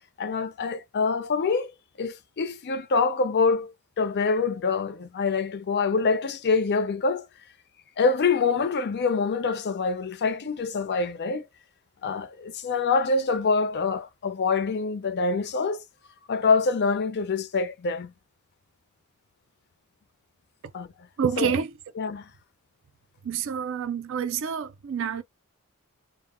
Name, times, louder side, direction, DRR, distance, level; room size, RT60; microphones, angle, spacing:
voice 1, 0.2-1.7 2.0-7.3 8.0-11.5 12.0-15.8 16.3-18.1 20.7-20.9 21.4-21.5 22.0-22.3, left 4 dB, 50° left, 0.5 m, -25 dB
voice 2, 21.2-21.7 23.2-25.2, right 7 dB, 60° right, 0.4 m, -28 dB
2.2 x 2.0 x 3.5 m
head